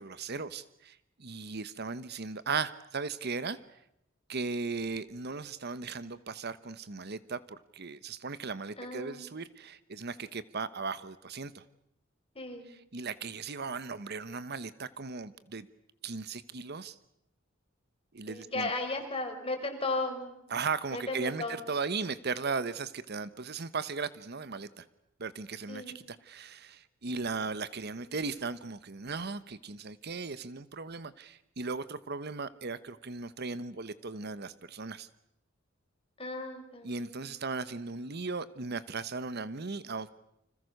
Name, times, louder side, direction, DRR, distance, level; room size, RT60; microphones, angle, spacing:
voice 1, 0.0-3.6 4.3-11.6 12.7-15.7 16.0-17.0 18.1-18.7 20.5-24.8 25.2-35.1 36.8-40.1, right 4 dB, 55° right, 15 dB, 1.0 m, -37 dB
voice 2, 8.8-9.3 12.3-12.7 18.3-20.3 20.9-21.6 25.7-26.0 36.2-37.3, left 2 dB, 30° left, 5 dB, 4.7 m, -35 dB
29.5 x 26.0 x 6.6 m, 0.79 s
head